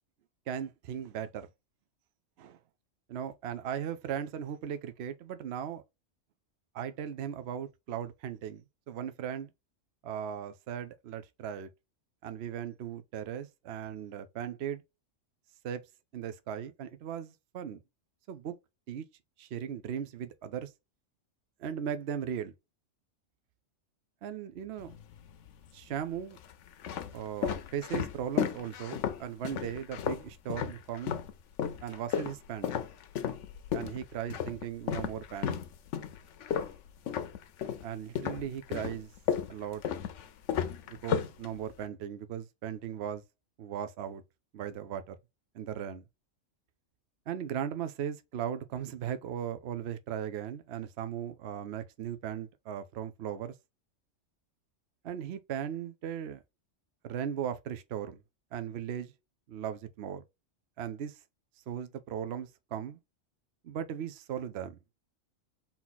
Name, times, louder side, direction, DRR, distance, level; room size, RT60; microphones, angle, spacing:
voice 1, 0.5-1.5 2.4-2.6 3.1-5.8 6.7-9.5 10.0-11.7 12.2-14.8 15.6-15.8 16.1-17.8 18.3-18.5 18.9-19.1 19.4-20.7 21.6-22.5 24.2-24.9 25.7-26.4 27.1-31.2 31.8-32.7 33.7-35.6 37.8-39.1 39.5-39.8 40.9-43.2 43.6-44.2 44.5-45.2 45.5-46.0 47.3-53.5 55.0-56.4 57.0-58.2 58.5-59.1 59.5-60.2 60.8-61.2 61.7-63.0 63.6-64.8, right 9 dB, 60° right, 0.8 m, -37 dB
sound 1, 24.8-25.5 26.2-31.3 31.6-37.9 38.2-41.9, left 8 dB, 70° left, 0.9 m, -34 dB
4.1 x 2.9 x 3.8 m
omnidirectional pair, 1.3 m